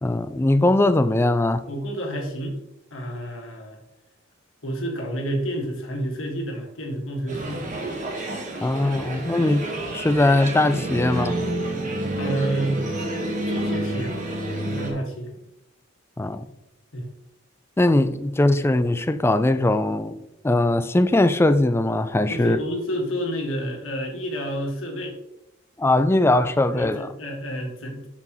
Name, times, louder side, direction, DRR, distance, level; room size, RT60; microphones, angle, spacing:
voice 1, 0.0-1.6 8.6-9.6 9.9-11.4 16.2-16.5 17.8-20.2 20.4-22.6 25.8-27.1, left 2 dB, 10° left, 0.3 m, -20 dB
voice 2, 1.7-2.6 2.9-3.8 4.6-7.6 12.2-12.9 13.4-14.3 14.6-15.3 16.9-17.1 22.3-25.2 26.7-28.1, right 1 dB, 70° left, 1.7 m, -29 dB
sound 1, 7.3-14.9, right 1 dB, 40° right, 1.3 m, -29 dB
7.6 x 5.9 x 3.0 m
head